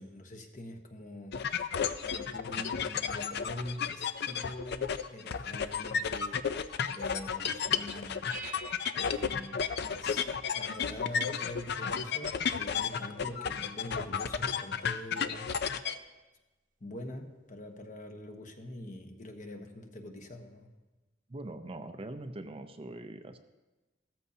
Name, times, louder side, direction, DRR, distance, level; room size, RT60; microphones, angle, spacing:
voice 1, 0.0-1.6 2.0-8.3 9.0-15.5 16.8-20.7, left 1 dB, 45° left, 4 dB, 1.2 m, -45 dB
sound 1, 1.3-16.0, left 7 dB, 60° left, 0.5 m, -33 dB
sound 2, 8.3-10.5, right 4 dB, 50° right, 0.9 m, -48 dB
voice 2, 21.3-23.4, right 2 dB, 30° right, 8 dB, 0.6 m, -42 dB
15.0 x 13.5 x 2.8 m, 1.1 s
head